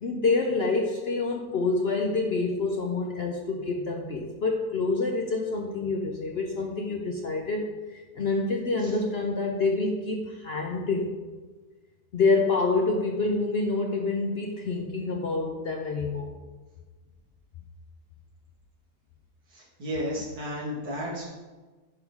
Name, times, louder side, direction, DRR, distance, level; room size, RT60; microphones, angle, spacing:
voice 1, 0.0-11.1 12.1-16.3, left 3 dB, 55° left, 1 dB, 0.7 m, -27 dB
voice 2, 19.5-21.2, equal, 75° right, -5 dB, 2.6 m, -33 dB
11.0 x 3.7 x 4.7 m, 1.3 s
omnidirectional pair, 1.7 m